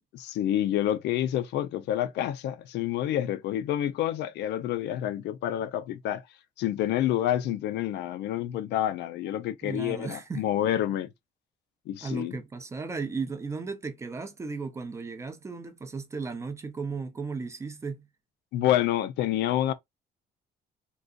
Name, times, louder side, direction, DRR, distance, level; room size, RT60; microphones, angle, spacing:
voice 1, 0.1-6.2 6.6-11.1 11.9-12.4 18.5-19.7, left 12 dB, 75° left, 0.4 m, -28 dB
voice 2, 9.6-10.5 12.0-18.1, right 4 dB, 15° right, 0.4 m, -35 dB
3.8 x 2.3 x 2.4 m
cardioid pair, 175°, 18 cm